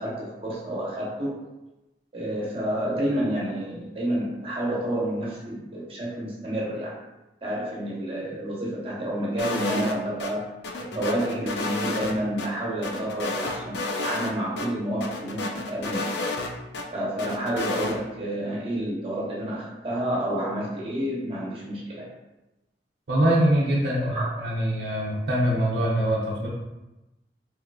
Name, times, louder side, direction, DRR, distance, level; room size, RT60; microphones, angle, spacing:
voice 1, 0.0-1.4 2.1-6.9 7.4-16.2 16.9-22.1 24.0-24.2, right 1 dB, 30° right, -5 dB, 1.0 m, -29 dB
sound 1, 9.4-10.3 10.6-12.5 12.8-14.3 14.6-14.7 15.0-16.8 17.2-18.0, left 2 dB, 75° left, 0.4 m, -30 dB
voice 2, 23.1-26.5, right 1 dB, 70° right, -6 dB, 0.6 m, -23 dB
3.6 x 3.2 x 2.3 m, 1.0 s
head